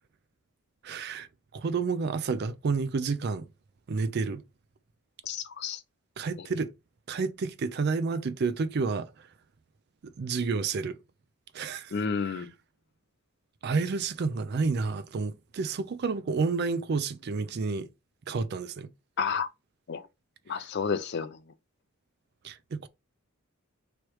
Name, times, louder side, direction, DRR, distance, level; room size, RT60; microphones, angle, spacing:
voice 1, 0.8-1.3 1.5-3.5 3.9-4.4 6.2-6.7 7.1-9.1 10.2-11.0 11.5-11.9 12.2-12.5 13.6-17.9 18.3-18.9 22.4-22.9, right 4 dB, 50° right, 0.4 m, -30 dB
voice 2, 5.3-5.8 11.9-12.5 19.2-19.5 19.9-20.0 20.5-21.4, left 6 dB, 50° left, 0.5 m, -30 dB
3.1 x 3.1 x 4.6 m
head